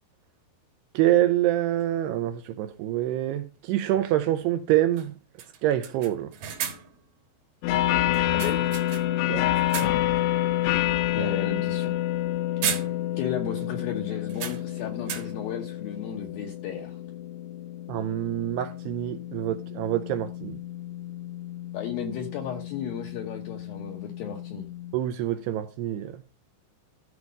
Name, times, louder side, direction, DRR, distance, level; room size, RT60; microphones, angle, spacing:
voice 1, 0.9-5.1 5.6-6.3 9.3-9.4 9.8-9.9 11.2-11.3 17.9-20.6 24.9-26.1, right 13 dB, 80° right, 2.4 m, -26 dB
sound 1, 1.8-1.9 4.0-4.1 4.4-4.5 5.0-5.1 5.4-7.1 8.1-9.2 9.5-10.2 10.6-10.8 12.1-12.3 12.6-13.4 13.6-13.7 14.3-15.6, right 8 dB, 65° right, 2.4 m, -35 dB
sound 2, 7.6-24.9, left 13 dB, 90° left, 3.3 m, -29 dB
voice 2, 8.3-8.8 11.1-11.9 13.2-17.0 21.7-24.7, left 7 dB, 70° left, 2.4 m, -34 dB
13.5 x 4.8 x 5.3 m
omnidirectional pair, 5.3 m